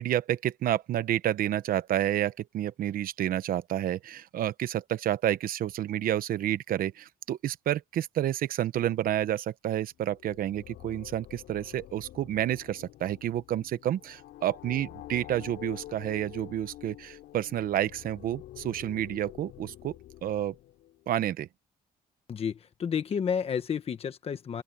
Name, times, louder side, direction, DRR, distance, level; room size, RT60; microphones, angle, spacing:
voice 1, 0.0-19.9 20.2-20.5 21.1-21.5, right 12 dB, 60° right, 1.0 m, -30 dB
sound 1, 9.9-21.1, left 14 dB, 85° left, 6.0 m, -47 dB
voice 2, 22.3-24.6, left 7 dB, 35° left, 1.3 m, -31 dB
open air
cardioid pair, 150°, 17 cm